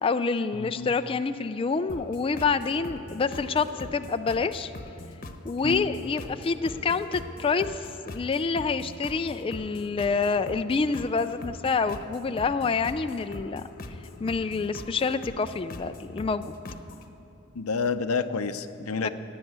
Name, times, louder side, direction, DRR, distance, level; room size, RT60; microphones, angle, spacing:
voice 1, 0.0-4.7 5.4-13.6 14.2-16.5 19.0-19.1, left 4 dB, 25° left, 9 dB, 0.3 m, -27 dB
voice 2, 0.6-0.9 5.6-5.9 17.5-19.1, left 4 dB, 90° left, 10 dB, 0.7 m, -29 dB
sound 1, 1.9-17.1, left 1 dB, 40° left, 1.0 m, -42 dB
16.5 x 10.0 x 7.9 m, 2.8 s
head